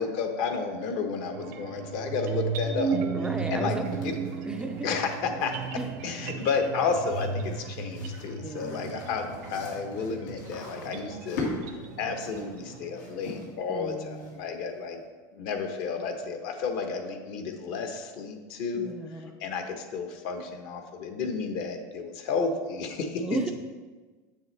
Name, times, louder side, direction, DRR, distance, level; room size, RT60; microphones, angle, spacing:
voice 1, 0.0-3.0 3.5-3.8 4.0-4.2 4.8-5.6 6.0-15.0 15.3-23.5, left 5 dB, 55° left, 5 dB, 1.0 m, -32 dB
sound 1, 1.3-13.5, right 5 dB, 80° right, 0.7 m, -35 dB
voice 2, 3.1-4.9 5.8-5.9 8.4-9.0 13.7-14.3 18.7-19.4 23.2-23.5, right 2 dB, 10° right, 4 dB, 0.3 m, -35 dB
sound 2, 3.8-14.6, left 3 dB, 90° left, 2.1 m, -42 dB
7.5 x 6.9 x 3.3 m, 1.3 s
supercardioid pair, 155°, 9 cm